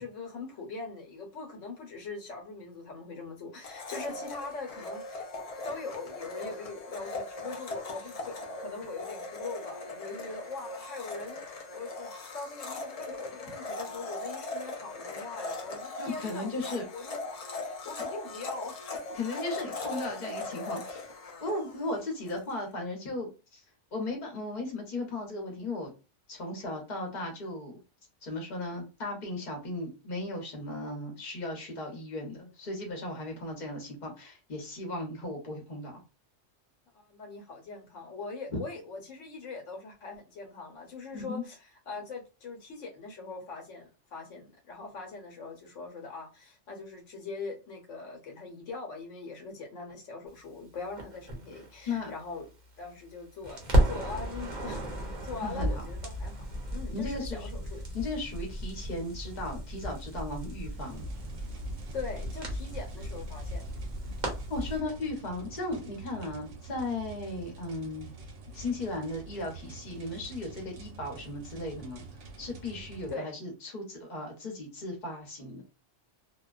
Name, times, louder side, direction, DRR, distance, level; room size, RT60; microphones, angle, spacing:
voice 1, 0.0-5.3 5.6-18.8 36.9-41.6 41.9-52.5 52.8-58.0 61.9-63.7 73.1-73.3, left 4 dB, 85° left, 1.1 m, -42 dB
Domestic sounds home sounds, 3.6-22.4, left 2 dB, 65° left, 0.3 m, -39 dB
voice 2, 16.0-16.8 19.1-21.0 21.4-23.6 23.9-25.9 26.3-27.8 28.2-36.0 41.1-41.4 51.9-52.1 55.4-55.8 56.9-57.5 57.9-61.1 64.5-68.1 68.5-72.0 72.4-75.6, left 2 dB, 40° left, 0.9 m, -36 dB
Crackle, 51.0-53.1 53.4-64.8, equal, 45° right, 0.8 m, -33 dB
sound 1, 60.8-73.2, right 3 dB, 75° right, 1.0 m, -46 dB
2.4 x 2.2 x 2.3 m
omnidirectional pair, 1.2 m